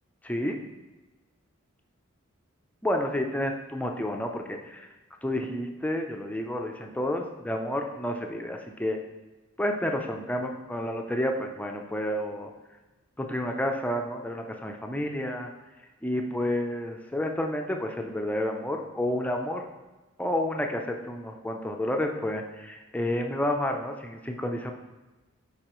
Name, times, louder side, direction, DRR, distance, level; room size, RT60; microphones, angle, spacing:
voice 1, 0.2-0.6 2.8-4.9 5.2-9.0 9.6-12.5 13.2-15.5 16.0-19.6 20.2-24.7, left 1 dB, 5° left, 3 dB, 0.5 m, -30 dB
10.0 x 4.1 x 3.0 m, 1.2 s
head